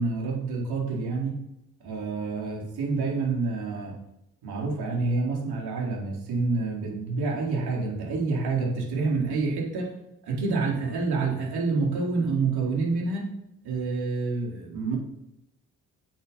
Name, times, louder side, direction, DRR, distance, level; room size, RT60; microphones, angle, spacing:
voice 1, 0.0-1.4 1.8-3.9 4.4-9.9 10.3-13.3 13.6-15.0, right 4 dB, 70° right, -2 dB, 4.0 m, -28 dB
9.3 x 8.1 x 5.8 m, 0.83 s
hypercardioid pair, 40°, 39 cm